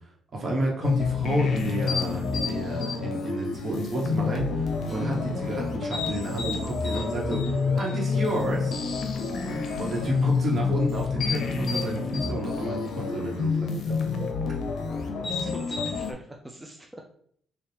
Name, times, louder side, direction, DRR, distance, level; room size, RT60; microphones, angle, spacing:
voice 1, 0.3-8.8 9.8-13.7, right 1 dB, 45° right, -2 dB, 1.3 m, -30 dB
sound 1, 0.8-16.1, left 5 dB, 65° left, 0.6 m, -28 dB
Acoustic guitar, 4.8-9.5, right 1 dB, 30° left, 1.7 m, -48 dB
voice 2, 15.2-17.0, right 1 dB, 10° right, 1 dB, 0.4 m, -43 dB
4.2 x 2.5 x 3.4 m, 0.63 s
cardioid pair, 90°, 0 cm